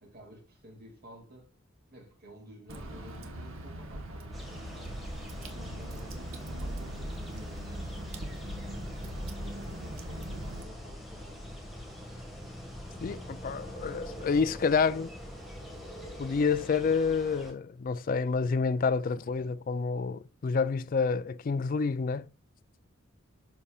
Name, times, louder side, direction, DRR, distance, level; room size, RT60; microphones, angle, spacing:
voice 1, 0.0-1.5 1.9-5.0 5.5-8.0 8.5-11.4, equal, 45° right, 2.4 m, -52 dB
Water / Drip, 2.7-10.6, right 1 dB, 75° right, 1.2 m, -41 dB
sound 1, 4.3-17.5, left 1 dB, ahead, 1.6 m, -43 dB
voice 2, 13.0-15.1 16.2-22.3, left 5 dB, 40° left, 0.3 m, -28 dB
12.0 x 4.2 x 2.3 m
head